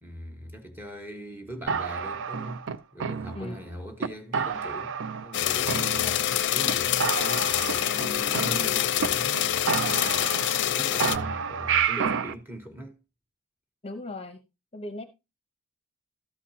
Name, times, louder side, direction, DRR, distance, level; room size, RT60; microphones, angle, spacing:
voice 1, 0.0-6.2 6.5-13.0, equal, 10° right, 1.4 m, -41 dB
sound 1, 1.7-3.6 4.0-4.1 4.3-5.4 5.7-6.4 6.7-6.8 7.0-9.1 9.3-9.4 9.7-10.7 11.0-12.3, right 6 dB, 60° right, 0.5 m, -30 dB
sound 2, 5.3-11.2, left 11 dB, 55° left, 0.6 m, -26 dB
voice 2, 6.0-6.4 13.8-14.4 14.7-15.0, left 2 dB, 25° left, 0.8 m, -38 dB
13.0 x 8.2 x 2.8 m
head